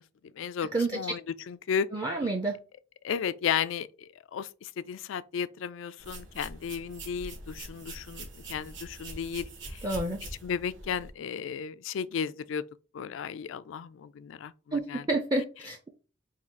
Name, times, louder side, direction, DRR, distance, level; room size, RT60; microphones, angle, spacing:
voice 1, 0.3-1.2 1.5-1.9 3.0-9.9 10.4-12.6 12.9-15.1, left 7 dB, 85° left, 0.3 m, -34 dB
voice 2, 1.9-2.6 9.8-10.2 14.7-15.9, right 2 dB, 20° right, 0.4 m, -29 dB
sound 1, 6.0-11.1, right 2 dB, 70° right, 1.4 m, -43 dB
3.7 x 2.3 x 4.4 m
head